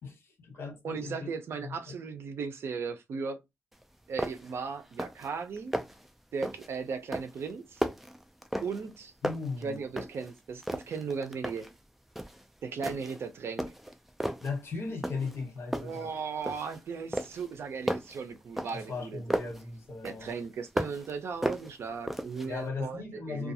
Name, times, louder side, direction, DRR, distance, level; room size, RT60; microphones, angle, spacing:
voice 1, 0.0-1.3 1.6-1.7 9.2-9.9 14.4-16.1 18.7-20.3 22.4-23.5, left 4 dB, 70° left, 1.1 m, -37 dB
voice 2, 0.8-3.4 4.1-5.7 6.3-7.8 8.6-9.1 9.6-11.7 12.6-13.7 15.8-19.4 20.0-23.0 23.3-23.5, right 5 dB, 70° right, 0.5 m, -37 dB
sound 1, 3.7-3.8 4.2-4.6 4.9-5.3 5.6-6.1 6.4-6.7 7.1-9.0 9.2-10.3 10.6-11.8 12.2-12.4 12.8-13.2 13.6-14.5 15.0-15.4 15.7-16.8 17.1-19.6 20.0-21.1 21.4-22.5, equal, 5° right, 0.3 m, -35 dB
2.4 x 2.3 x 2.7 m
wide cardioid pair, 145°, 4 cm